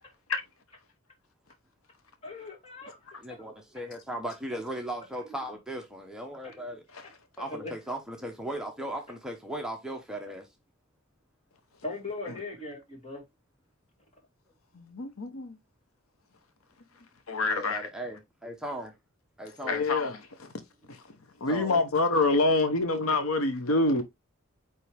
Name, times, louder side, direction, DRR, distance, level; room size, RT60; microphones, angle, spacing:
voice 1, 2.2-3.0 6.4-6.6 7.4-7.7 11.8-13.2, left 3 dB, 30° left, 2.6 m, -39 dB
voice 2, 3.2-6.8 7.4-10.5 17.4-18.9 19.4-19.9 21.5-21.7, right 1 dB, 5° right, 1.0 m, -37 dB
voice 3, 14.7-15.5 17.3-17.9 19.6-20.5 20.9-21.0 21.4-24.0, left 2 dB, 80° left, 1.0 m, -26 dB
8.6 x 3.5 x 3.4 m
head